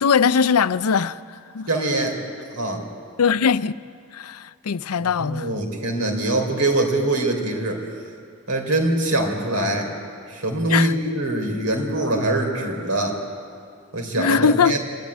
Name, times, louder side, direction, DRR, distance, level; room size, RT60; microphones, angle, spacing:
voice 1, 0.0-1.2 1.5-1.7 3.2-3.7 4.1-5.6 10.7-10.9 14.2-14.8, left 6 dB, 85° left, 0.5 m, -20 dB
voice 2, 1.7-2.2 2.5-2.8 5.2-7.8 8.5-9.9 10.3-13.2 13.9-14.8, right 1 dB, 85° right, 3.6 m, -23 dB
27.5 x 12.5 x 9.5 m
head